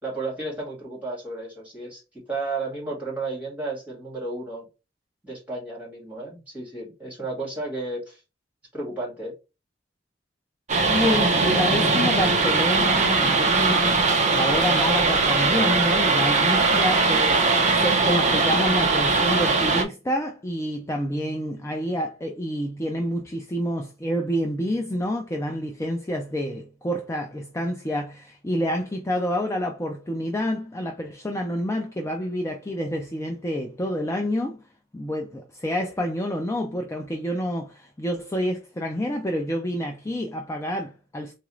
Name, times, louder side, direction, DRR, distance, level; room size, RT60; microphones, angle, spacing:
voice 1, 0.0-4.7 5.2-8.2 8.7-9.3, right 2 dB, 10° right, 2.2 m, -33 dB
sound 1, 10.7-19.8, right 3 dB, 40° right, 0.6 m, -20 dB
voice 2, 10.8-14.0 14.3-34.6 34.9-41.3, equal, 15° left, 0.4 m, -28 dB
4.0 x 2.4 x 3.1 m
head